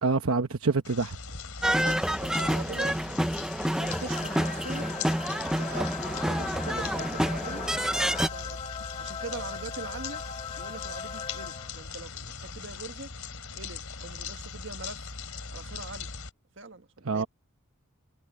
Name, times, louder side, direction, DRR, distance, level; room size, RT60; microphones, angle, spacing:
voice 1, 0.0-1.2 17.0-17.3, right 4 dB, 80° right, 1.0 m, -26 dB
sound 1, 0.8-16.3, left 5 dB, 85° left, 3.3 m, -40 dB
sound 2, 1.6-8.3, equal, 5° right, 0.7 m, -28 dB
voice 2, 1.6-3.3 3.6-4.9 5.6-7.7 8.0-8.6 9.0-10.2 10.6-13.1 13.5-15.1 15.5-16.1 16.6-17.3, right 3 dB, 60° right, 1.6 m, -42 dB
sound 3, 3.8-12.0, left 6 dB, 25° left, 1.1 m, -40 dB
head